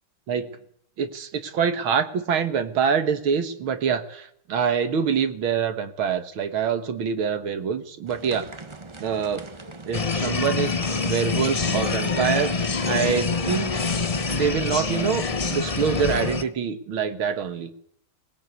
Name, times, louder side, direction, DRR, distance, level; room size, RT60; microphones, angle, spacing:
voice 1, 1.0-8.5 9.0-9.5 9.9-13.8 14.3-17.7, right 7 dB, 85° right, 9 dB, 2.4 m, -25 dB
sound 1, 8.1-16.5, right 3 dB, 20° right, 0.8 m, -41 dB
sound 2, 9.9-16.4, left 4 dB, 50° left, 0.4 m, -26 dB
20.5 x 20.0 x 8.2 m, 0.70 s
omnidirectional pair, 2.2 m